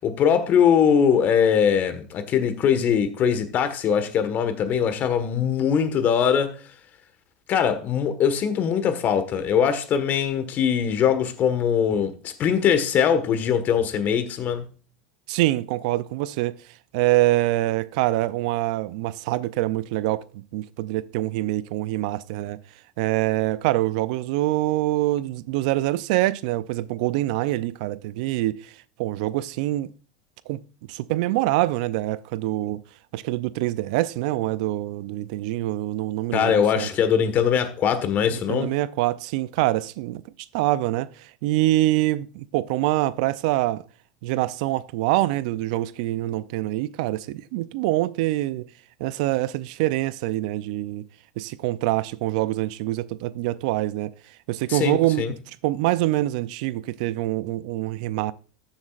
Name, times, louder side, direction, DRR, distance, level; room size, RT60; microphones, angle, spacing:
voice 1, 0.0-6.5 7.5-14.6 36.3-38.7 54.7-55.3, left 7 dB, 45° left, 1.5 m, -21 dB
voice 2, 15.3-16.5 16.9-22.6 23.0-28.7 29.0-29.9 30.5-30.6 30.9-32.8 33.1-36.9 38.3-40.2 40.5-43.8 44.2-48.7 49.0-51.0 51.4-54.1 54.5-58.3, right 16 dB, 70° right, 0.5 m, -25 dB
14.0 x 7.3 x 2.5 m
hypercardioid pair, 100°, 4 cm